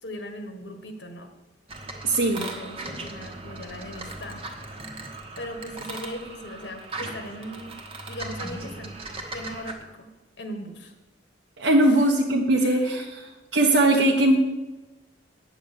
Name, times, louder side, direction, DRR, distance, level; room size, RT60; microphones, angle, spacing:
voice 1, 0.0-1.3 2.2-4.4 5.4-7.7 8.1-9.0 9.3-10.1 10.4-10.9 11.9-12.1 12.5-13.2, equal, 70° left, 6 dB, 1.5 m, -39 dB
sound 1, 1.7-9.7, right 2 dB, 30° right, 1.2 m, -38 dB
voice 2, 2.0-2.5 11.6-13.0 13.5-14.4, right 1 dB, 80° right, -1 dB, 1.1 m, -20 dB
9.0 x 7.9 x 6.9 m, 1.1 s
head